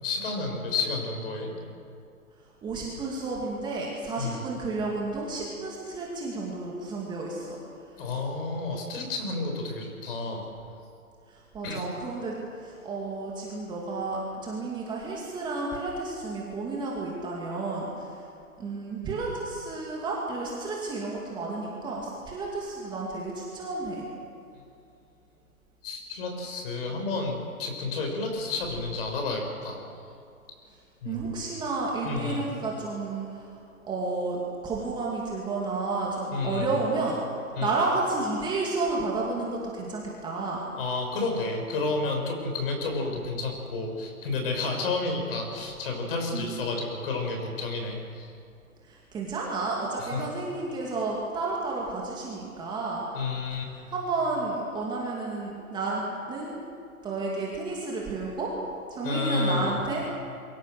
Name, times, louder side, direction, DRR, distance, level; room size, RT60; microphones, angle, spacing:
voice 1, 0.0-1.5 4.2-4.4 8.0-10.5 11.6-11.8 25.8-29.8 31.0-31.3 32.0-32.5 36.3-36.7 37.5-37.7 40.8-48.3 50.0-50.2 53.1-53.6 59.0-59.8, left 3 dB, 40° left, 2 dB, 6.7 m, -30 dB
voice 2, 2.6-7.6 11.3-18.2 18.6-24.1 31.0-33.6 33.9-37.2 37.6-40.6 46.3-46.5 48.9-53.0 53.5-53.6 53.9-56.6 57.0-58.5 58.9-60.1, right 3 dB, 10° right, -3 dB, 2.6 m, -31 dB
26.5 x 23.5 x 6.7 m, 2.5 s
figure-of-eight pair, 145°, 45 cm